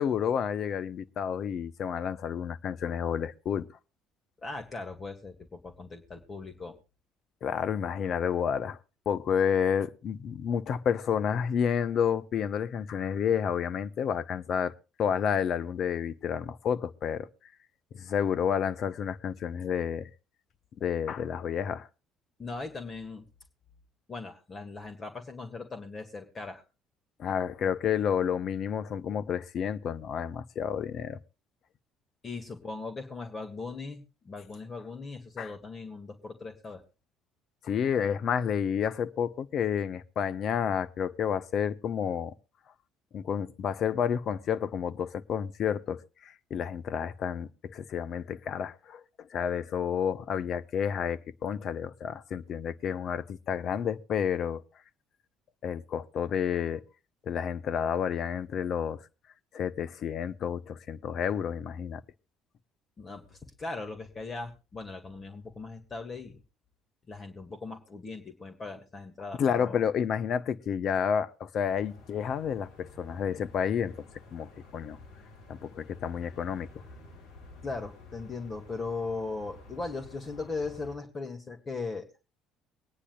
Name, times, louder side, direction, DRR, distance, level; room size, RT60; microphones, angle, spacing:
voice 1, 0.0-3.7 7.4-8.8 9.1-14.7 15.0-17.3 17.9-20.1 20.8-21.9 27.2-31.2 35.4-35.5 37.6-42.3 43.1-49.0 49.3-54.6 55.6-56.8 57.3-59.0 59.5-62.0 69.4-73.9 74.3-75.0 75.5-76.7, left 8 dB, 50° left, 0.7 m, -30 dB
voice 2, 4.4-5.4 5.6-6.8 22.4-23.3 24.1-26.6 32.2-36.8 63.0-66.4 67.1-69.8 77.6-82.1, left 3 dB, 30° left, 1.9 m, -39 dB
sound 1, 71.6-81.0, left 3 dB, 65° left, 1.9 m, -51 dB
24.0 x 9.8 x 2.3 m
figure-of-eight pair, 55°, 0 cm